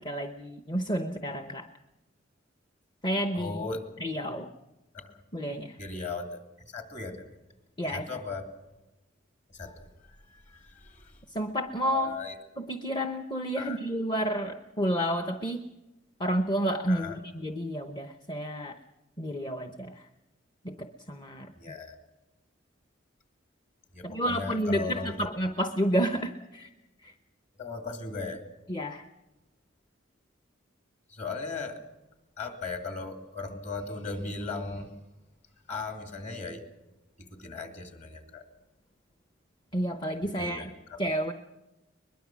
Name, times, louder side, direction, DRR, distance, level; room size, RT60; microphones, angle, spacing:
voice 1, 0.0-1.7 3.0-3.7 4.0-4.5 5.3-5.8 7.8-8.1 11.3-12.2 12.6-15.7 16.2-18.8 19.2-20.1 20.6-21.5 24.0-26.7 27.0-27.1 28.7-29.1 39.7-40.7 41.0-41.3, equal, 25° left, 7 dB, 0.8 m, -30 dB
voice 2, 3.3-3.8 4.9-5.2 5.8-6.4 6.7-7.3 7.9-8.4 9.5-11.2 11.8-12.4 13.6-13.8 16.9-17.2 21.6-21.9 23.9-25.3 27.6-28.4 31.1-31.8 32.4-34.9 35.7-36.6 37.2-38.5 40.2-41.2, left 3 dB, 40° left, 4 dB, 2.6 m, -37 dB
22.0 x 21.5 x 6.2 m, 1.0 s
head